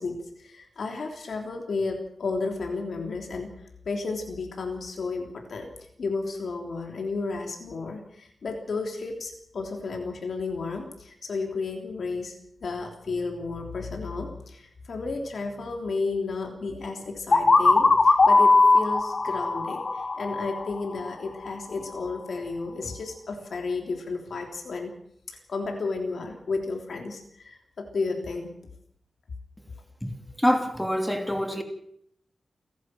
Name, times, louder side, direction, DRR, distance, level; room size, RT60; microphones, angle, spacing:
voice 1, 0.0-3.5 3.8-12.4 12.6-24.9 25.3-28.6, left 3 dB, 70° left, 3.3 m, -32 dB
sound 1, 17.3-21.1, left 3 dB, 45° left, 1.9 m, -20 dB
voice 2, 30.4-31.6, equal, 5° left, 3.1 m, -25 dB
30.0 x 11.5 x 7.7 m
wide cardioid pair, 115°, 0 cm